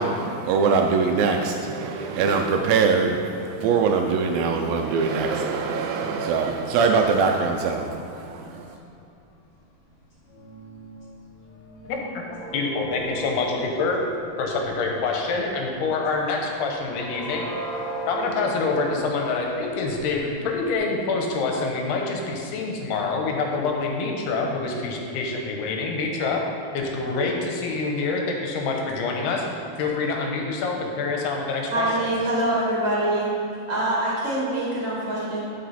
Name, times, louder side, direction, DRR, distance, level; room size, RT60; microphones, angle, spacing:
voice 1, 0.0-8.8, right 5 dB, 85° right, 3 dB, 2.1 m, -23 dB
sound 1, 5.3-8.7 9.3-9.5 10.1-15.5 16.0-16.3 16.8-20.7, right 2 dB, 50° left, 0.7 m, -38 dB
voice 2, 11.8-14.0 14.4-17.5 18.1-26.4 26.7-29.5 29.8-32.1, left 3 dB, 80° left, 1 dB, 3.1 m, -26 dB
voice 3, 31.7-33.3 33.7-35.4, right 1 dB, 35° right, -7 dB, 2.5 m, -24 dB
11.5 x 6.2 x 4.2 m, 2.7 s
omnidirectional pair, 4.6 m